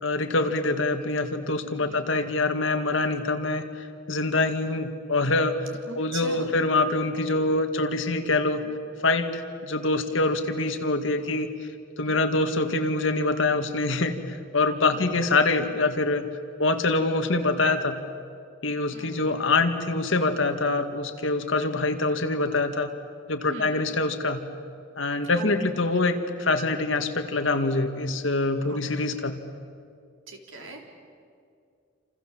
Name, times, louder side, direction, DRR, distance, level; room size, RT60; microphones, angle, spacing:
voice 1, 0.0-5.6 6.0-8.6 9.0-11.5 12.0-16.3 16.6-18.0 18.6-22.9 23.3-24.4 25.0-29.4, left 2 dB, 75° left, 6 dB, 2.0 m, -25 dB
voice 2, 1.8-2.1 5.9-6.4 8.6-8.7 12.0-12.2 14.9-15.2 18.9-19.2 23.4-23.9 25.3-26.0 28.6-28.8 29.1-29.2 30.3-30.8, right 2 dB, 80° right, 2 dB, 4.1 m, -42 dB
28.0 x 27.5 x 7.6 m, 2.3 s
head